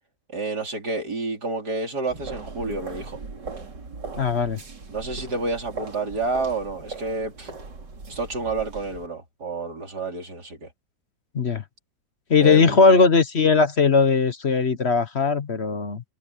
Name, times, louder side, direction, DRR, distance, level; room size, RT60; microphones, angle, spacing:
voice 1, 0.3-3.2 4.9-7.5 8.1-10.7 12.4-13.0, right 3 dB, 65° right, 4.8 m, -29 dB
sound 1, 2.0-9.1, right 4 dB, 85° right, 3.7 m, -39 dB
voice 2, 4.2-4.6 11.3-11.6 12.3-16.0, left 4 dB, 40° left, 1.3 m, -19 dB
omnidirectional pair, 1.8 m